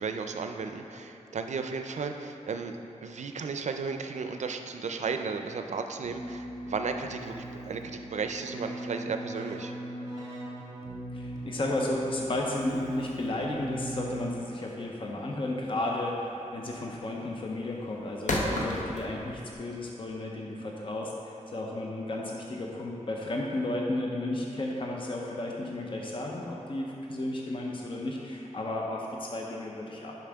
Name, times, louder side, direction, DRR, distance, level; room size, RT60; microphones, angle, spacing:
voice 1, 0.0-9.7, right 5 dB, 65° right, 6 dB, 0.4 m, -34 dB
Keyboard (musical), 6.0-14.7, right 1 dB, 30° right, 1.5 m, -40 dB
voice 2, 11.1-30.1, left 1 dB, 45° left, -1 dB, 0.6 m, -33 dB
sound 1, 12.9-19.5, left 1 dB, 70° left, 0.9 m, -35 dB
8.5 x 5.8 x 3.5 m, 2.9 s
wide cardioid pair, 120°, 13 cm